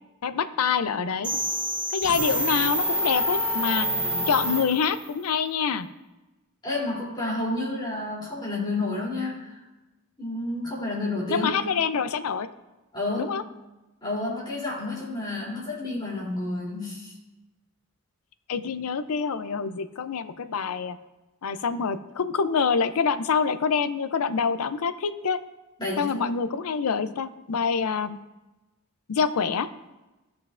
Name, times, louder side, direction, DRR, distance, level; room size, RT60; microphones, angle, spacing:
voice 1, 0.2-1.3 1.9-3.9 4.3-5.9 11.3-12.5 13.2-13.4 18.5-21.0 21.4-25.4 26.0-28.2 29.1-29.7, left 6 dB, 80° left, 12 dB, 0.5 m, -26 dB
sound 1, 1.2-5.1, equal, 5° right, 1.1 m, -27 dB
voice 2, 4.0-4.3 6.6-9.6 10.2-11.7 12.9-13.4 14.0-17.1 25.8-26.2, left 2 dB, 20° left, -7 dB, 3.0 m, -30 dB
15.5 x 5.7 x 2.5 m, 1.1 s
head